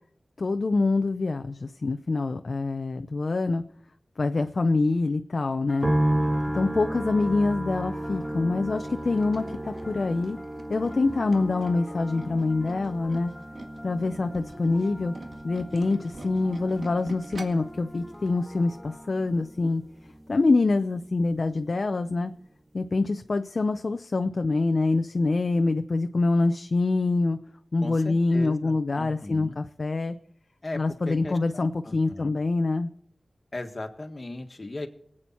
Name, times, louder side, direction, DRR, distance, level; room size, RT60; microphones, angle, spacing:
voice 1, 0.4-3.6 4.2-5.9 6.5-10.4 10.7-13.3 13.8-15.1 15.4-19.8 20.3-22.3 22.7-27.4 27.7-30.2 30.7-32.9, left 3 dB, 60° left, 8 dB, 0.6 m, -25 dB
sound 1, 5.7-19.6, left 1 dB, 25° left, 1.1 m, -48 dB
sound 2, 5.8-21.1 21.3-22.2, right 1 dB, 20° right, 0.8 m, -34 dB
Tools, 8.9-13.9 14.2-17.7 18.1-18.3 18.6-18.7, right 2 dB, 75° right, 2.0 m, -45 dB
voice 2, 27.8-29.6 30.6-32.3 33.5-34.9, left 2 dB, 40° left, 4 dB, 1.7 m, -37 dB
23.5 x 8.7 x 4.4 m, 0.71 s
wide cardioid pair, 65°, 0 cm